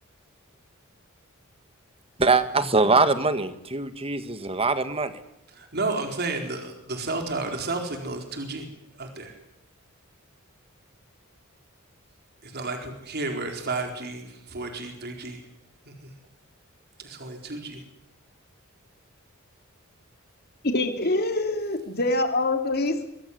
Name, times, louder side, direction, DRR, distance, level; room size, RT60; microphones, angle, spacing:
voice 1, 2.2-5.1, right 3 dB, 30° right, 10 dB, 1.9 m, -22 dB
voice 2, 5.5-8.7 9.0-9.4 12.4-15.4 16.0-16.1 17.0-17.8, right 3 dB, 50° right, 4 dB, 4.3 m, -32 dB
voice 3, 20.6-23.0, left 2 dB, 50° left, 5 dB, 2.9 m, -25 dB
24.5 x 22.0 x 9.6 m, 0.79 s
head